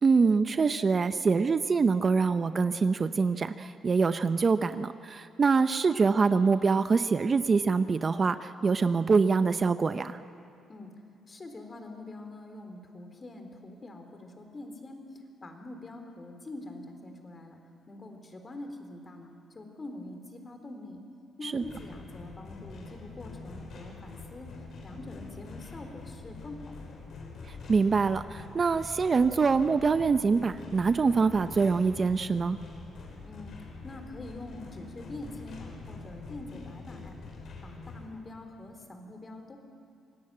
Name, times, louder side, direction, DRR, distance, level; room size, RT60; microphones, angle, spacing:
voice 1, 0.0-10.2 21.4-21.6 27.5-32.6, right 4 dB, 40° right, 11 dB, 0.7 m, -25 dB
voice 2, 11.3-17.6 17.9-21.0 21.4-26.7 33.2-33.5 33.8-37.2 37.6-39.6, left 2 dB, 30° left, 5 dB, 3.8 m, -44 dB
sound 1, 21.6-38.1, left 3 dB, 65° left, 5.0 m, -45 dB
27.0 x 17.5 x 8.9 m, 2.5 s
cardioid pair, 90°, 0 cm